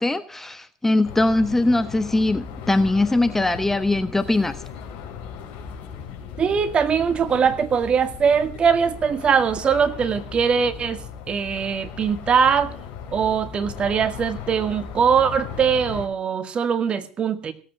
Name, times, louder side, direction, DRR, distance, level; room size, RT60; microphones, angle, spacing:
voice 1, 0.0-4.6, left 2 dB, 10° left, 12 dB, 1.2 m, -21 dB
sound 1, 1.1-16.1, left 7 dB, 50° left, 4.3 m, -37 dB
voice 2, 6.4-12.7 13.1-17.5, right 6 dB, 30° right, 10 dB, 2.1 m, -21 dB
17.5 x 8.4 x 7.6 m, 0.39 s
hypercardioid pair, 85°, 3 cm